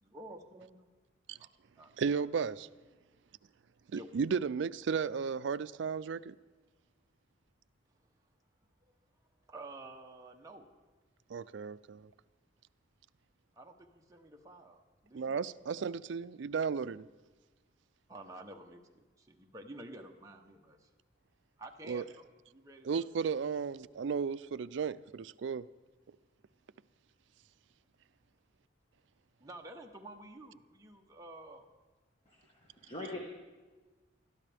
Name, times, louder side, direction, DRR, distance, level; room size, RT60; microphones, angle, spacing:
voice 1, 0.0-0.9 1.4-1.5 1.8-1.9 3.9-4.1 9.5-10.7 13.6-15.4 18.1-20.9 21.6-23.1 29.4-31.7, right 2 dB, 15° right, 0.8 m, -50 dB
voice 2, 2.0-2.7 3.9-6.4 11.3-12.1 15.1-17.1 21.9-22.1 22.8-25.7, right 6 dB, 70° right, 0.4 m, -34 dB
voice 3, 32.3-33.2, left 2 dB, 30° left, 1.4 m, -43 dB
20.5 x 13.0 x 3.4 m
head